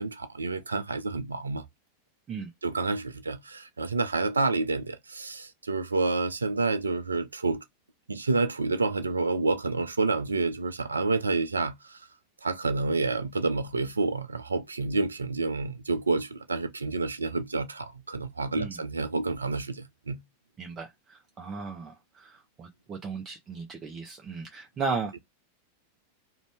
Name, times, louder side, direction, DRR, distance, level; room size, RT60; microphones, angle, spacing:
voice 1, 0.0-1.6 2.6-7.6 8.1-12.0 12.4-20.2, right 3 dB, 75° right, 0.4 m, -29 dB
voice 2, 20.6-25.1, right 4 dB, 25° right, 0.6 m, -36 dB
2.6 x 2.2 x 3.3 m
figure-of-eight pair, 90°, 0 cm